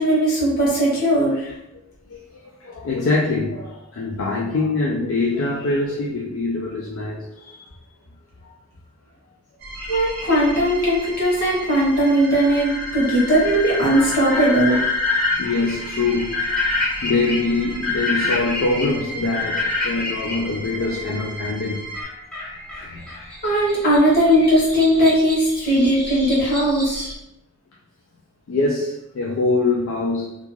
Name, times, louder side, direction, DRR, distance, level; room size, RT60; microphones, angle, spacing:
voice 1, 0.0-1.5 9.9-14.8 23.4-27.1, equal, 45° left, -6 dB, 1.0 m, -18 dB
voice 2, 2.1-7.7 15.4-16.4 16.7-21.8 22.8-23.1 28.5-30.4, left 3 dB, 65° left, -2 dB, 0.4 m, -24 dB
sound 1, 9.6-22.0, right 1 dB, 50° right, 0.7 m, -35 dB
sound 2, 9.8-20.4 21.9-27.1, left 3 dB, 5° left, 0.5 m, -28 dB
2.4 x 2.3 x 3.0 m, 0.86 s
head